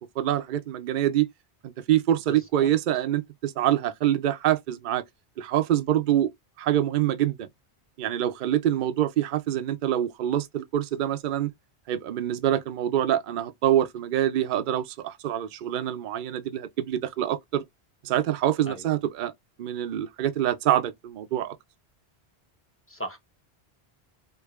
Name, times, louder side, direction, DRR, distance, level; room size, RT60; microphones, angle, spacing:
voice 1, 0.2-1.3 1.6-5.0 5.4-6.3 6.6-7.5 8.0-11.5 11.9-17.6 18.0-19.3 19.6-21.5, right 11 dB, 55° right, 0.6 m, -25 dB
voice 2, 2.3-2.7 18.6-18.9 22.9-23.2, equal, 15° left, 0.8 m, -37 dB
4.7 x 2.5 x 2.4 m
omnidirectional pair, 1.1 m